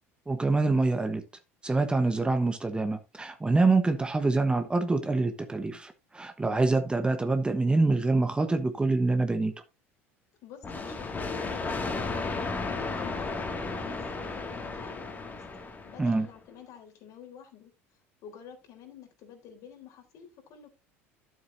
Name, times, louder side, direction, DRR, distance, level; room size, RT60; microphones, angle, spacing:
voice 1, 0.3-1.2 1.6-9.5 16.0-16.3, right 3 dB, 15° right, 1.2 m, -25 dB
voice 2, 10.4-15.4 15.8-17.7 18.2-20.7, left 8 dB, 55° left, 3.7 m, -50 dB
sound 1, 10.6-16.2, left 3 dB, 25° left, 2.3 m, -34 dB
12.5 x 7.6 x 2.7 m
figure-of-eight pair, 70°, 7 cm